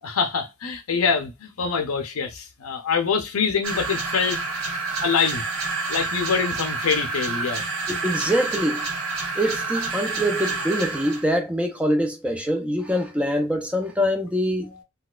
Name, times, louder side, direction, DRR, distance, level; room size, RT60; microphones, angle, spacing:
voice 1, 0.0-4.4 5.0-5.5 5.9-7.6, left 5 dB, 75° left, 0.6 m, -25 dB
sound 1, 3.6-11.3, right 3 dB, 85° right, 1.2 m, -28 dB
voice 2, 7.9-8.9 9.4-14.7, equal, 5° right, 0.5 m, -24 dB
4.0 x 2.3 x 2.3 m
head